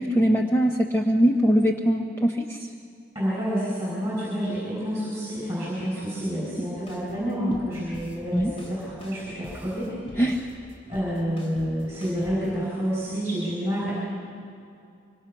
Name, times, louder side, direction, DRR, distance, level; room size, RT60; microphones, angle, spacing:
voice 1, 0.0-2.7 6.6-6.7 8.3-8.5 10.2-10.4, equal, 10° left, 1 dB, 0.8 m, -22 dB
voice 2, 3.1-10.2 10.9-14.0, equal, 15° right, -7 dB, 7.1 m, -29 dB
sound 1, 6.8-12.6, equal, 30° left, 3.4 m, -46 dB
25.0 x 24.5 x 5.9 m, 2.4 s
head